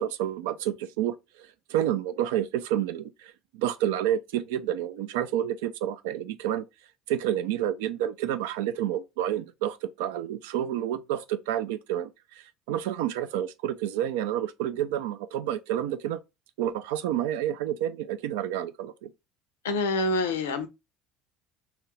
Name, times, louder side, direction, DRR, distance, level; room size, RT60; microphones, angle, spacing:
voice 1, 0.0-6.7 7.1-16.2 16.6-19.1, right 11 dB, 75° right, 0.3 m, -29 dB
voice 2, 19.6-20.7, left 2 dB, 80° left, 0.5 m, -26 dB
2.9 x 2.4 x 3.1 m
hypercardioid pair, 65°, 0 cm